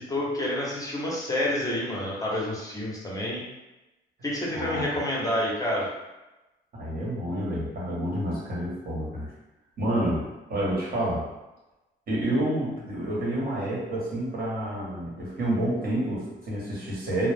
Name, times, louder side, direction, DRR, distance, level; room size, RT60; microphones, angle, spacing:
voice 1, 0.0-3.4 4.2-5.9, left 1 dB, 15° left, -4 dB, 0.8 m, -28 dB
voice 2, 4.5-4.8 6.7-9.3 9.8-10.2 10.5-11.2 12.1-17.3, right 1 dB, 50° right, -5 dB, 1.2 m, -29 dB
2.3 x 2.0 x 3.4 m, 1.0 s
cardioid pair, 90°, 20 cm